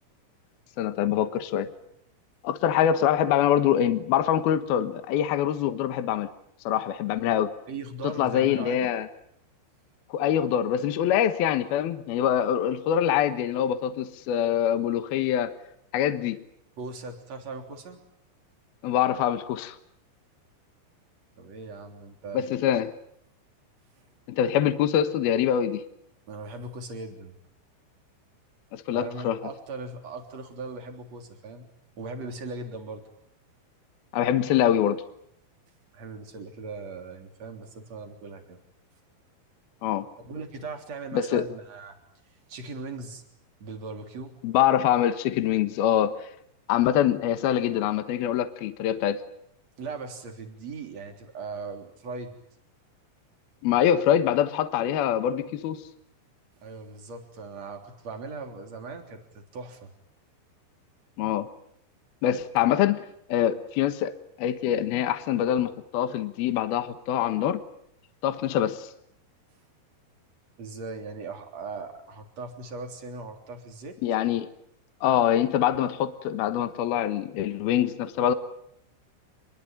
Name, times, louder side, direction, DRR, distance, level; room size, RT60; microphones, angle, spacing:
voice 1, 0.8-1.7 2.4-6.3 6.6-7.5 8.0-9.1 10.1-15.5 15.9-16.4 18.8-19.8 22.3-22.9 24.3-25.8 28.7-29.4 34.1-35.0 39.8-40.1 41.1-41.5 44.4-46.3 46.7-49.2 53.6-55.8 61.2-61.5 62.2-63.0 63.3-64.1 64.4-67.6 68.2-68.9 74.0-74.5 75.0-78.3, left 10 dB, 65° left, 10 dB, 2.8 m, -24 dB
voice 2, 7.7-8.9 16.8-18.0 21.4-22.5 24.0-24.1 26.3-27.3 28.9-31.7 32.0-33.0 35.9-38.6 40.2-42.0 42.5-43.2 43.6-44.3 49.8-52.3 56.6-59.9 70.6-74.0, right 3 dB, 35° right, 5 dB, 4.2 m, -39 dB
27.0 x 22.5 x 9.1 m, 0.71 s
omnidirectional pair, 5.5 m